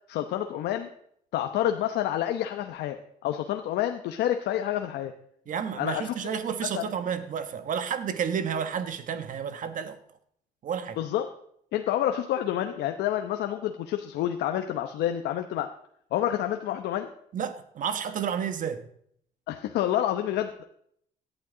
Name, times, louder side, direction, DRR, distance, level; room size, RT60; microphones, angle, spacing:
voice 1, 0.1-0.9 1.3-5.1 5.8-6.1 6.6-6.9 11.0-11.3 11.7-15.7 16.1-17.1 19.5-20.6, left 11 dB, 80° left, 1.0 m, -28 dB
voice 2, 5.5-10.0 10.6-11.0 17.3-18.8, right 7 dB, 50° right, 1.3 m, -31 dB
17.5 x 11.5 x 3.9 m
cardioid pair, 110°, 17 cm